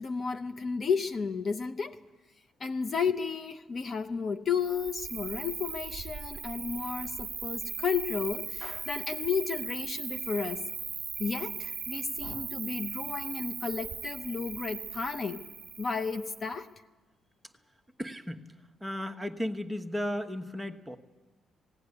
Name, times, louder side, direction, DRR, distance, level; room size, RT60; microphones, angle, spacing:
voice 1, 0.0-2.0 2.6-10.6 11.2-15.4 15.8-16.7, left 5 dB, 40° left, 9 dB, 0.7 m, -33 dB
Cricket, 4.6-16.5, right 7 dB, 45° right, 1.5 m, -39 dB
voice 2, 18.0-18.4 18.8-21.0, left 1 dB, 5° right, 3 dB, 1.2 m, -34 dB
18.5 x 17.0 x 9.8 m, 1.2 s
cardioid pair, 115°, 0 cm